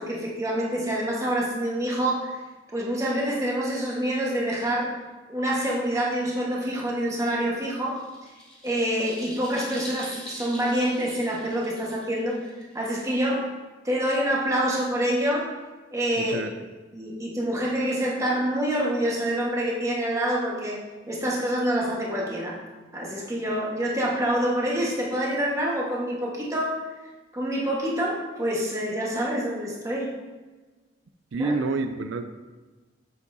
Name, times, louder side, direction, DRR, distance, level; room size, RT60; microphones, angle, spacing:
voice 1, 0.0-2.4 2.7-4.9 5.3-8.0 8.6-12.4 12.7-13.5 13.8-15.5 15.9-16.4 16.9-20.8 21.1-22.6 22.9-26.8 27.3-30.1 31.4-31.7, right 1 dB, 15° right, -3 dB, 1.4 m, -26 dB
sound 1, 7.6-13.4, equal, 5° left, 2.1 m, -43 dB
voice 2, 16.2-16.5 31.3-32.2, right 3 dB, 85° right, 8 dB, 0.4 m, -28 dB
8.2 x 7.2 x 2.7 m, 1.3 s
head